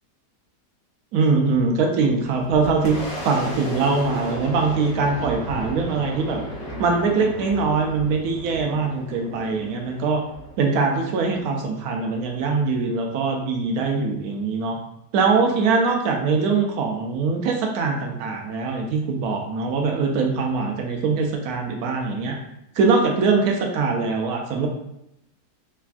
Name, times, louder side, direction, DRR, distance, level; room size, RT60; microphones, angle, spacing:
voice 1, 1.1-3.0 3.2-6.4 6.8-10.2 10.6-14.8 15.1-22.4 22.8-24.7, right 4 dB, 70° right, 2 dB, 1.0 m, -22 dB
Boom, 2.0-11.4, right 1 dB, 50° left, 0.9 m, -35 dB
3.3 x 2.2 x 2.4 m, 0.83 s
omnidirectional pair, 1.8 m